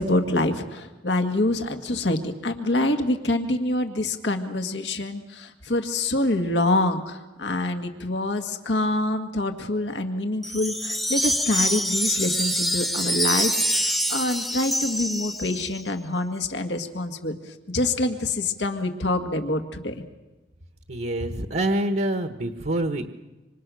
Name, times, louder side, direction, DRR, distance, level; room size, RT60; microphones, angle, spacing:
voice 1, 0.0-19.9, left 2 dB, 85° left, 5 dB, 1.9 m, -26 dB
Wind chime, 10.4-15.8, equal, ahead, 1.0 m, -25 dB
voice 2, 20.9-23.1, right 1 dB, 60° right, 6 dB, 1.4 m, -26 dB
26.5 x 26.0 x 6.4 m, 1.1 s
head